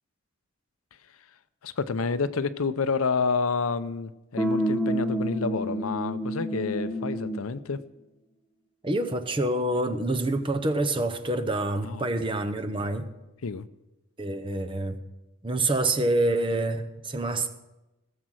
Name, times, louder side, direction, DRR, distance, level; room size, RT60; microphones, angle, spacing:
voice 1, 1.6-7.8 11.8-12.1 13.4-13.6, left 4 dB, 80° left, 0.6 m, -29 dB
sound 1, 4.4-7.5, right 1 dB, ahead, 0.9 m, -28 dB
voice 2, 8.8-13.1 14.2-15.0 15.4-17.5, right 2 dB, 25° right, 0.8 m, -27 dB
17.5 x 7.4 x 6.3 m
head